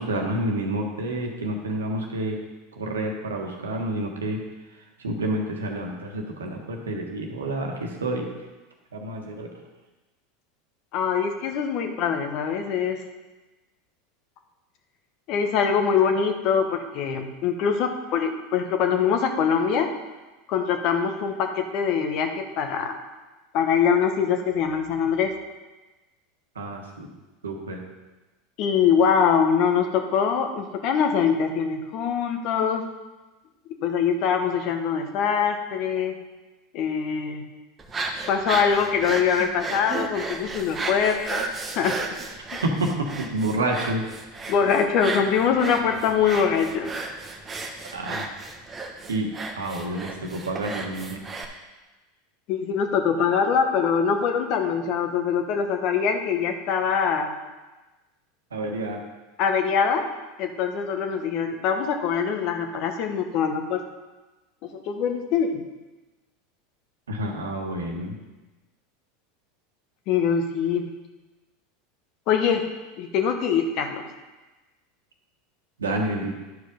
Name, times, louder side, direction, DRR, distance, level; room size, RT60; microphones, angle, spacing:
voice 1, 0.0-2.4 2.7-4.4 5.0-8.3 8.9-9.5 26.5-27.1 27.4-27.8 42.6-44.0 47.9-48.3 49.1-49.3 49.6-51.2 58.5-59.0 67.1-68.1 75.8-76.3, right 1 dB, 90° right, 2 dB, 1.4 m, -29 dB
voice 2, 10.9-13.0 15.3-19.9 20.5-23.0 23.5-25.3 28.6-32.8 33.8-36.2 36.7-37.4 38.3-41.4 41.7-41.9 42.5-42.6 44.5-46.9 52.5-57.3 59.4-60.0 60.4-63.8 64.6-65.6 70.1-70.9 72.3-72.6 73.0-74.1, left 7 dB, 55° left, 5 dB, 1.1 m, -23 dB
sound 1, 37.8-51.4, right 3 dB, 25° right, 1.2 m, -34 dB
10.5 x 4.9 x 5.2 m, 1.2 s
hypercardioid pair, 90°, 0 cm